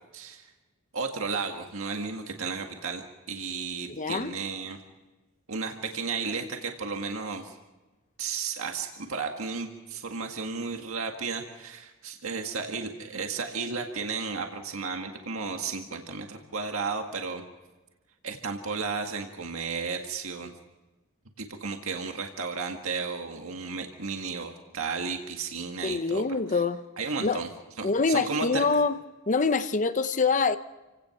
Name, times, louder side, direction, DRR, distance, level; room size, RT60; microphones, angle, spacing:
voice 1, 0.1-0.5 0.9-4.8 5.5-7.6 8.2-17.4 18.2-20.5 21.4-26.2 26.5-26.6 27.0-27.5 27.8-28.7, right 4 dB, 75° right, 1.9 m, -33 dB
voice 2, 3.9-4.3 25.8-26.8 27.2-27.4 27.8-29.0 29.3-30.6, left 4 dB, 35° left, 0.8 m, -25 dB
29.0 x 17.5 x 5.9 m
head